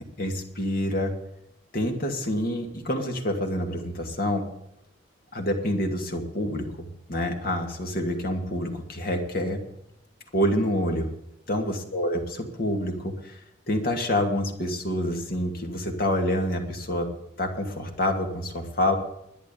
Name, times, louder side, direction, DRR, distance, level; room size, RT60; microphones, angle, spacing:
voice 1, 0.2-1.1 1.7-4.5 5.3-9.6 10.3-11.1 11.5-12.2 12.6-13.4 13.7-17.1 17.4-19.0, left 1 dB, 50° left, 3 dB, 2.3 m, -27 dB
12.0 x 10.0 x 7.0 m, 0.82 s
head